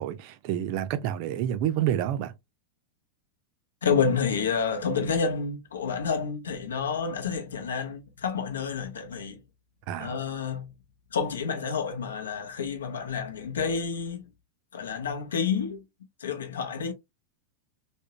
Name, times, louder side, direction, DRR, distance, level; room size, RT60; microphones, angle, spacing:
voice 1, 0.0-2.3 9.9-10.2, right 11 dB, 45° right, 0.4 m, -28 dB
voice 2, 3.8-9.4 10.0-10.7 11.1-14.3 14.7-15.8 16.2-16.9, left 6 dB, 65° left, 0.7 m, -29 dB
3.6 x 2.1 x 2.7 m
figure-of-eight pair, 90°, 0 cm